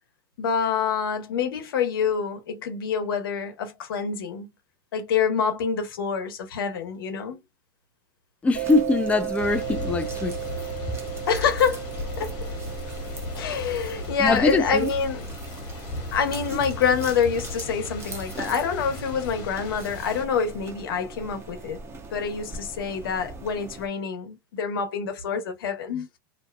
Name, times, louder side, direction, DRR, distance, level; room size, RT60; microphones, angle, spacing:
voice 1, 0.4-4.5 4.9-7.4 11.3-11.8 12.2-12.3 13.4-15.3 16.1-21.8 22.1-26.1, left 6 dB, 80° left, 0.9 m, -26 dB
voice 2, 8.4-10.4 14.2-14.9, left 3 dB, 10° left, 0.4 m, -22 dB
sound 1, 8.5-23.9, right 3 dB, 20° right, 0.7 m, -41 dB
Mallet percussion, 8.5-14.9, right 14 dB, 85° right, 0.5 m, -35 dB
Thunder / Rain, 9.4-20.2, left 2 dB, 55° left, 1.3 m, -36 dB
2.7 x 2.2 x 2.2 m
hypercardioid pair, 115°, 12 cm